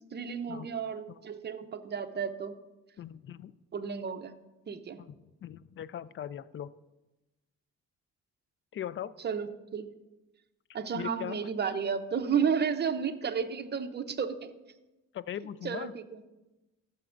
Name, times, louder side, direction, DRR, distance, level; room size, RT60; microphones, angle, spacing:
voice 1, 0.1-2.6 3.7-4.4 4.7-5.0 9.2-9.9 10.7-14.5 15.6-16.2, right 6 dB, 35° right, 8 dB, 0.7 m, -32 dB
voice 2, 3.0-3.6 5.0-5.1 5.4-6.7 8.7-9.1 10.9-11.4 15.1-15.9, left 10 dB, 40° left, 17 dB, 0.4 m, -39 dB
14.0 x 7.0 x 2.5 m, 1.0 s
cardioid pair, 90°, 30 cm